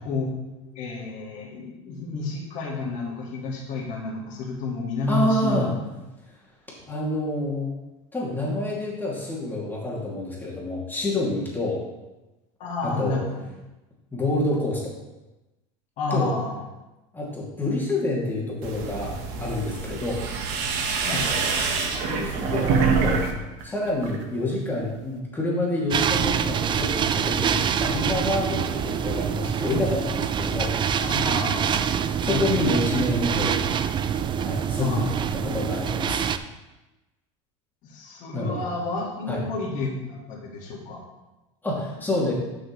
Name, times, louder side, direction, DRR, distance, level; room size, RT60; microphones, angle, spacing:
voice 1, 0.7-5.7 12.6-13.4 16.0-16.6 21.0-21.3 31.0-31.9 32.3-32.6 34.8-35.2 37.8-41.0, left 3 dB, 55° left, -2 dB, 2.0 m, -30 dB
voice 2, 5.1-5.7 6.8-7.7 8.1-11.8 12.8-13.2 14.1-14.9 16.1-16.3 17.1-20.2 22.1-23.2 23.6-30.7 32.2-33.6 34.4-35.1 35.4-36.2 38.3-38.6 39.3-39.4 41.6-42.3, left 1 dB, 10° left, -5 dB, 2.6 m, -27 dB
sound 1, 18.6-23.3 23.6-24.2, right 5 dB, 65° right, 1.3 m, -26 dB
sound 2, 25.9-36.4, right 8 dB, 30° right, 0.5 m, -25 dB
10.5 x 6.2 x 3.2 m, 1.1 s
supercardioid pair, 105°, 16 cm